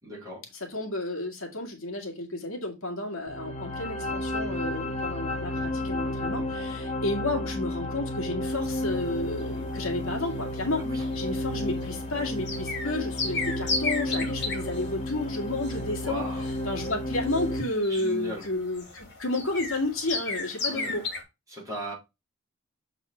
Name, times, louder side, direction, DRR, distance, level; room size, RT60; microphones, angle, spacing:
voice 1, 0.0-0.5 10.8-11.1 16.0-16.6 17.9-18.5 20.6-21.0 21.5-21.9, right 1 dB, 15° right, 3.7 m, -37 dB
voice 2, 0.6-10.8 11.2-16.2 16.6-21.0, left 2 dB, 70° left, 2.0 m, -31 dB
sound 1, 3.3-17.6, left 1 dB, 30° left, 0.9 m, -32 dB
sound 2, 8.5-21.2, left 3 dB, 55° left, 2.2 m, -36 dB
7.2 x 4.0 x 4.4 m
head